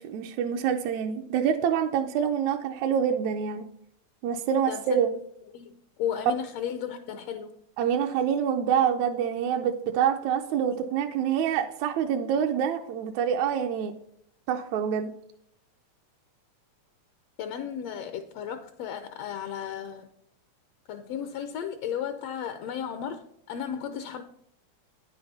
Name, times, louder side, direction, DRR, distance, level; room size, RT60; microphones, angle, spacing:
voice 1, 0.0-3.7 4.2-5.1 7.8-13.9 14.5-15.1, right 8 dB, 80° right, 4 dB, 1.8 m, -26 dB
voice 2, 5.5-7.6 17.4-20.1 20.9-24.2, left 8 dB, 75° left, 8 dB, 1.5 m, -34 dB
9.5 x 7.8 x 4.1 m, 0.71 s
omnidirectional pair, 3.6 m